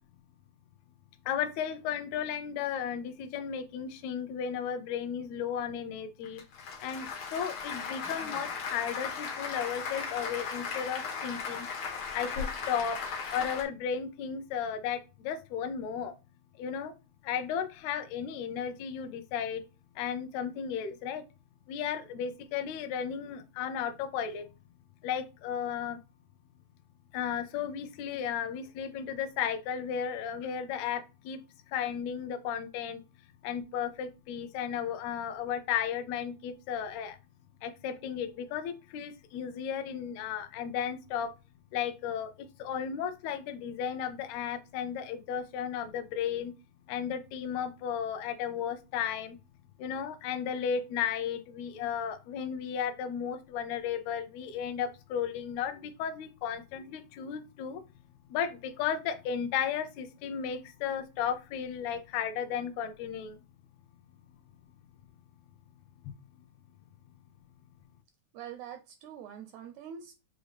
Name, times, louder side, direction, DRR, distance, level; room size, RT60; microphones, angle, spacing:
voice 1, 1.2-6.4 6.8-11.7 12.1-13.0 13.3-16.1 16.6-16.9 17.2-19.6 19.9-21.2 21.7-24.5 25.0-26.0 27.1-31.4 31.7-33.0 33.4-37.2 37.6-41.3 41.7-46.5 46.9-49.4 49.8-57.8 58.3-63.4, left 8 dB, 75° left, 9 dB, 1.7 m, -34 dB
Applause, 6.2-13.6, left 5 dB, 55° left, 1.5 m, -37 dB
voice 2, 68.3-70.1, right 8 dB, 80° right, 7 dB, 1.7 m, -44 dB
6.3 x 2.5 x 3.4 m, 0.28 s
omnidirectional pair, 3.5 m